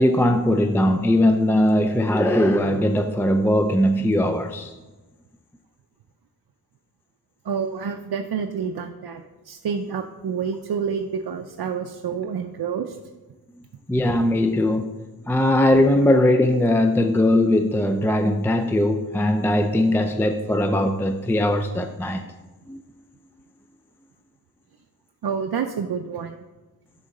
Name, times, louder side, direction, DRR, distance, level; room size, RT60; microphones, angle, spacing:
voice 1, 0.0-4.7 13.9-14.9 15.3-22.2 22.7-22.8, left 1 dB, 5° left, 6 dB, 0.4 m, -20 dB
voice 2, 7.4-13.0 25.2-26.3, right 6 dB, 75° right, 6 dB, 0.6 m, -28 dB
11.0 x 3.9 x 6.5 m, 1.2 s
wide cardioid pair, 105°, 39 cm